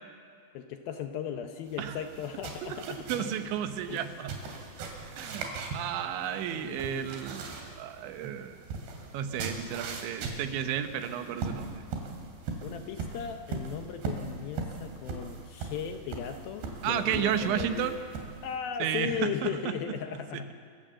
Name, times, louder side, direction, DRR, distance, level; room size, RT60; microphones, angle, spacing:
voice 1, 0.5-3.3 3.9-4.0 6.5-7.1 12.6-17.9 18.4-20.5, left 8 dB, 75° left, 6 dB, 2.2 m, -37 dB
sound 1, 1.7-18.6, right 4 dB, 70° right, 4.5 m, -40 dB
voice 2, 2.6-4.4 5.1-8.6 9.1-11.8 16.8-18.0 18.8-19.5 20.3-20.5, right 9 dB, 90° right, 8 dB, 3.5 m, -33 dB
27.5 x 14.5 x 7.7 m, 2.2 s
omnidirectional pair, 5.1 m